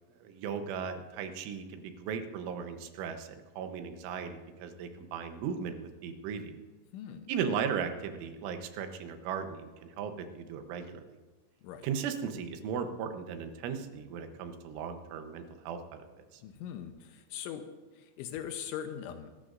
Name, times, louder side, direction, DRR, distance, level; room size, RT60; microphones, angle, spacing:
voice 1, 0.2-6.6 7.3-11.2 11.8-16.1 16.3-16.4, right 7 dB, 85° right, 7 dB, 3.5 m, -37 dB
voice 2, 6.9-7.3 11.6-11.9 16.4-17.7 18.0-19.3, left 9 dB, 85° left, 7 dB, 3.2 m, -41 dB
24.5 x 13.0 x 2.6 m, 1.3 s
omnidirectional pair, 5.4 m